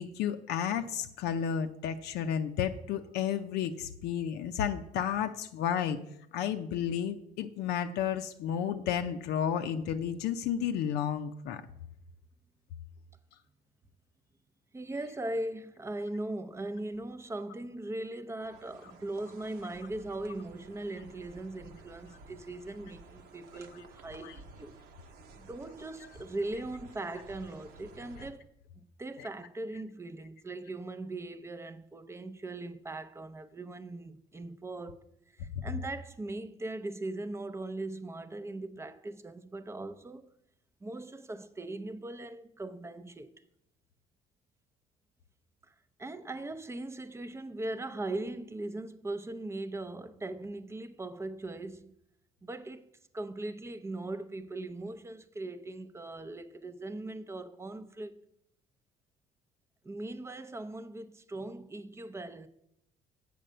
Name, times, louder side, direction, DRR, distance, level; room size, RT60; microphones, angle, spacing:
voice 1, 0.0-6.0 6.3-11.6 24.2-24.4 29.2-29.3, left 9 dB, 80° left, 0.6 m, -32 dB
voice 2, 14.7-24.8 25.4-28.4 28.8-35.0 35.3-40.3 40.8-43.3 45.6-51.9 52.4-52.9 53.1-58.2 59.8-62.5, right 2 dB, 15° right, 0.5 m, -39 dB
sound 1, 18.4-28.3, right 3 dB, 70° right, 1.0 m, -53 dB
7.8 x 5.0 x 6.6 m
cardioid pair, 110°, 17 cm